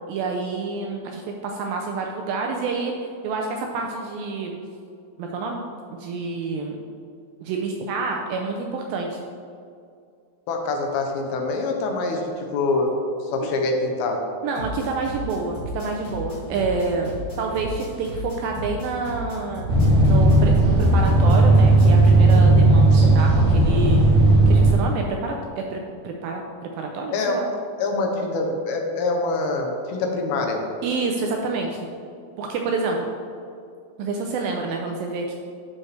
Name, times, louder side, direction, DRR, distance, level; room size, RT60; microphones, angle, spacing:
voice 1, 0.1-2.9 3.2-4.6 5.2-5.6 5.9-6.8 7.4-9.2 14.4-19.7 20.0-24.0 24.5-27.4 30.8-31.9 32.4-33.1 34.0-35.3, right 4 dB, 80° right, 1 dB, 2.1 m, -28 dB
voice 2, 10.5-12.9 13.2-14.2 27.1-27.4 27.8-30.6, left 3 dB, 80° left, 2 dB, 2.5 m, -25 dB
sound 1, 14.5-22.5, equal, 40° left, 1.9 m, -35 dB
sound 2, 19.7-24.7, right 2 dB, 65° right, 2.3 m, -15 dB
11.5 x 4.3 x 3.3 m, 2.3 s
omnidirectional pair, 4.6 m